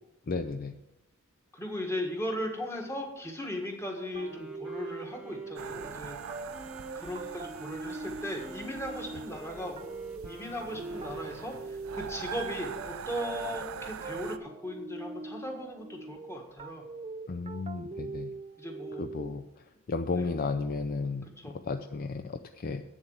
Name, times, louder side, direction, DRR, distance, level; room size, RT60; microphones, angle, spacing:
voice 1, 0.3-0.7 17.3-18.3 19.0-19.4 19.9-22.8, left 4 dB, 45° left, 8 dB, 0.4 m, -33 dB
voice 2, 1.5-6.2 6.9-9.9 10.2-16.9 18.6-19.0 20.1-20.3 21.2-21.6, left 1 dB, 15° left, 2 dB, 1.7 m, -37 dB
Wind instrument woodwind instrument, 4.1-12.0, right 1 dB, 5° right, 1.1 m, -49 dB
sound 1, 4.1-19.5, right 3 dB, 30° right, 0.4 m, -42 dB
sound 2, 5.6-14.4, right 7 dB, 90° right, 0.5 m, -43 dB
8.3 x 7.2 x 8.1 m, 0.96 s
head